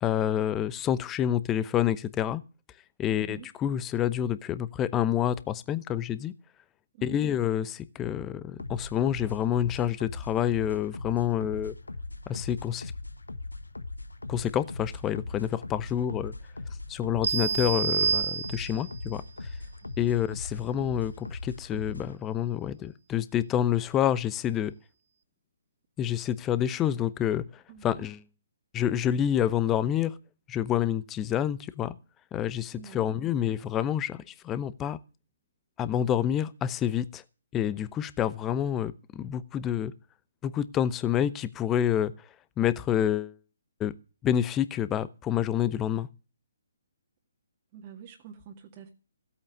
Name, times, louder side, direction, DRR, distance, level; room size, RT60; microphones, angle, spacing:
voice 1, 0.0-2.4 3.0-6.3 7.0-11.7 12.3-12.9 14.3-16.3 16.9-19.2 20.0-24.7 26.0-28.2 28.7-30.1 30.5-32.0 32.3-35.0 35.8-37.2 37.5-39.9 40.4-42.1 42.6-43.4 43.8-43.9 44.2-46.1, left 10 dB, 15° left, 0.8 m, -28 dB
voice 2, 3.1-3.5 6.9-7.3 17.4-17.7 20.1-20.2 27.7-28.1 32.7-33.0 47.7-48.9, right 7 dB, 30° right, 2.0 m, -46 dB
sound 1, 8.6-22.2, left 2 dB, 80° left, 1.1 m, -40 dB
sound 2, 17.2-19.0, right 6 dB, 60° right, 0.9 m, -28 dB
16.0 x 8.6 x 6.5 m
figure-of-eight pair, 135°, 0 cm